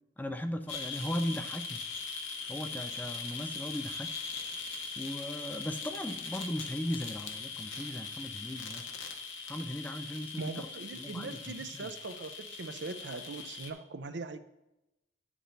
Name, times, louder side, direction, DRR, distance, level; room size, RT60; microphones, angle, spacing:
voice 1, 0.2-1.9 2.5-4.1 5.0-8.9 9.5-10.7 10.9-11.9, left 1 dB, 10° left, 7 dB, 0.5 m, -37 dB
sound 1, 0.7-13.7, left 4 dB, 85° left, 0.9 m, -41 dB
voice 2, 10.4-14.4, right 3 dB, 65° right, 10 dB, 0.6 m, -40 dB
9.6 x 6.1 x 4.0 m, 0.94 s
head